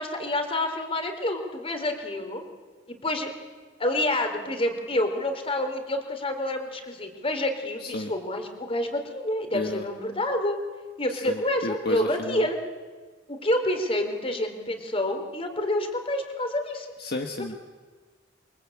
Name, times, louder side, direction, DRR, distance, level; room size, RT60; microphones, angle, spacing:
voice 1, 0.0-2.4 2.9-3.3 3.8-10.6 11.0-12.6 13.3-16.9, left 1 dB, 30° left, 6 dB, 3.8 m, -28 dB
voice 2, 7.8-8.1 9.5-9.8 11.2-12.5 17.0-17.6, left 2 dB, 55° left, 3 dB, 1.6 m, -32 dB
28.0 x 23.5 x 8.7 m, 1.4 s
head